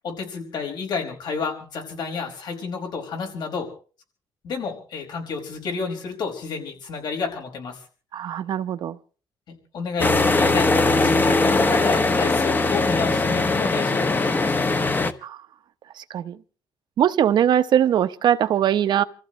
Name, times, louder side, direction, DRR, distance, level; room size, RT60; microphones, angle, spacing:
voice 1, 0.0-3.7 4.4-7.8 9.5-14.6, left 5 dB, 65° left, 5.3 m, -30 dB
voice 2, 8.1-9.0 15.2-15.4 16.0-16.4 17.0-19.0, right 10 dB, 65° right, 1.0 m, -21 dB
sound 1, 10.0-15.1, left 3 dB, 25° left, 1.1 m, -20 dB
28.5 x 15.0 x 3.3 m
cardioid pair, 125°, 8 cm